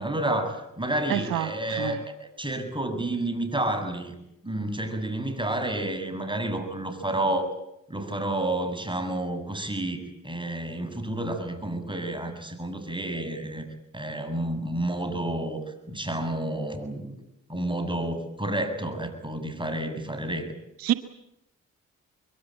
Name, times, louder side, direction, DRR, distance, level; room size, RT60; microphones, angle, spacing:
voice 1, 0.0-2.0 2.4-4.2 4.4-7.5 7.9-13.6 13.9-17.2 17.5-20.5, right 1 dB, 15° right, 7.5 m, -30 dB
voice 2, 1.1-2.0 20.8-20.9, right 12 dB, 80° right, 1.1 m, -28 dB
24.0 x 22.5 x 8.8 m
supercardioid pair, 45°, 35 cm